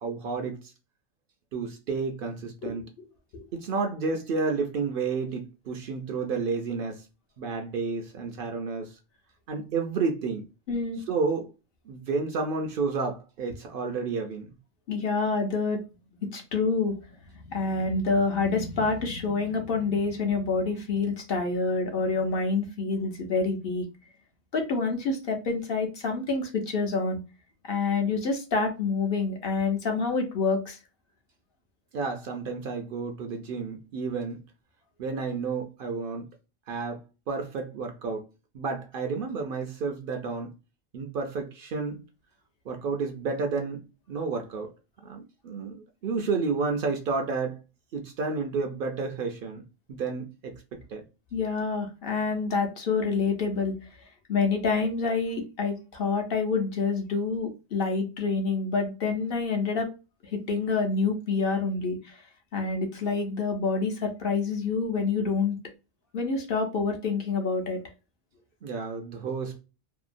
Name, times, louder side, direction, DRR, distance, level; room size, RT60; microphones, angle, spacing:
voice 1, 0.0-0.7 1.5-2.9 3.5-7.0 7.4-9.0 9.5-10.4 11.1-11.5 11.9-14.5 31.9-34.4 35.0-36.3 36.7-38.2 38.5-40.5 40.9-42.0 42.7-44.7 45.0-47.6 47.9-49.6 49.9-51.0 68.6-69.6, right 4 dB, 60° right, 0.7 m, -31 dB
voice 2, 10.7-11.0 14.9-15.8 16.2-17.2 17.4-23.9 24.5-27.2 27.6-30.8 51.3-53.9 54.3-59.9 60.3-62.2 62.5-65.6 66.1-67.8, left 4 dB, 60° left, 0.8 m, -27 dB
2.7 x 2.2 x 2.5 m
omnidirectional pair, 1.1 m